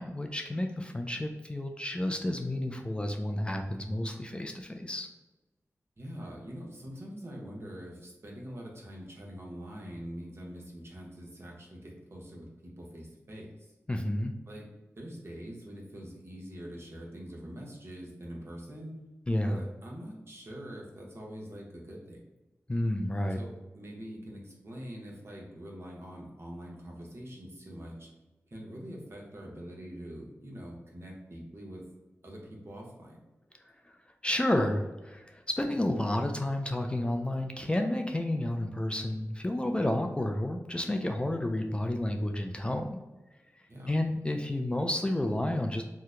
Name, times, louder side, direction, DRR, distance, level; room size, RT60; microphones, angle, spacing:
voice 1, 0.0-5.1 13.9-14.3 19.3-19.6 22.7-23.4 33.6-33.9 34.2-43.0 43.5-45.8, left 1 dB, 20° left, 4 dB, 0.3 m, -31 dB
voice 2, 6.0-13.7 14.5-14.7 15.0-18.9 19.4-22.2 23.3-28.1 28.5-31.9 32.2-33.2 43.7-44.0, equal, 50° right, -2 dB, 0.9 m, -44 dB
2.8 x 2.1 x 3.6 m, 1.1 s
cardioid pair, 55°, 5 cm